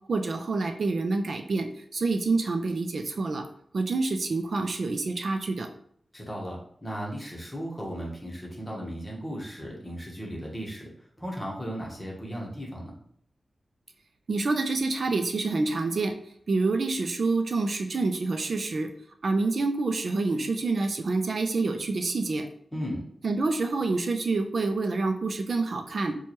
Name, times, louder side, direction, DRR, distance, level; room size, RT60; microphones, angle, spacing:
voice 1, 0.1-3.4 3.7-5.7 14.3-16.1 16.5-18.9 19.2-22.5 23.2-26.1, right 3 dB, 55° right, 6 dB, 0.4 m, -27 dB
voice 2, 6.1-10.9 11.2-12.9 22.7-23.0, equal, 10° left, -3 dB, 1.0 m, -36 dB
4.5 x 2.3 x 2.9 m, 0.65 s
wide cardioid pair, 135°, 0 cm